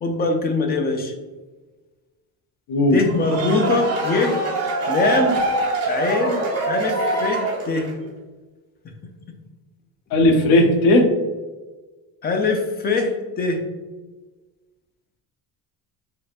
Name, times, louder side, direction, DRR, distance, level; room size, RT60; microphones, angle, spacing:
voice 1, 0.0-1.1 2.9-4.4 4.9-5.4 5.9-7.9 8.8-9.1 12.2-13.6, left 3 dB, 25° left, 4 dB, 0.4 m, -22 dB
voice 2, 2.7-3.0 10.1-11.1, left 1 dB, 85° left, 4 dB, 0.7 m, -15 dB
sound 1, 3.0-8.0, right 2 dB, 40° right, 1.0 m, -24 dB
3.4 x 3.2 x 2.4 m, 1.3 s
cardioid pair, 155°, 38 cm